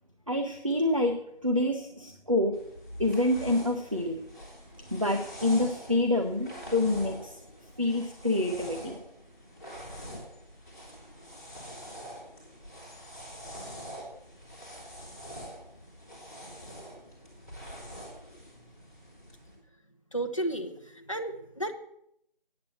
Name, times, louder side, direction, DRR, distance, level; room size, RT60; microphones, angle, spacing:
voice 1, 0.3-1.1 1.4-2.6 3.0-4.2 4.9-7.4 7.8-9.0, left 1 dB, 35° right, 4 dB, 0.8 m, -27 dB
sound 1, 2.5-19.5, equal, 20° left, 2.7 m, -45 dB
voice 2, 20.1-21.7, right 1 dB, 35° left, 4 dB, 0.9 m, -33 dB
8.8 x 8.3 x 7.1 m, 0.74 s
figure-of-eight pair, 175°, 29 cm